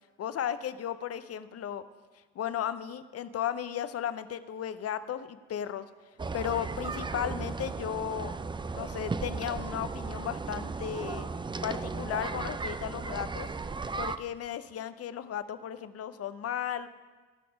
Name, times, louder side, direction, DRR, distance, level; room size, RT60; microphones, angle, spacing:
voice 1, 0.2-1.8 2.3-5.8 6.3-8.3 8.7-11.3 11.6-13.5 14.0-16.9, left 9 dB, 45° left, 13 dB, 0.7 m, -35 dB
sound 1, 6.2-14.2, right 4 dB, 15° right, 0.5 m, -36 dB
16.0 x 5.9 x 5.2 m, 1.3 s
hypercardioid pair, 55°, 34 cm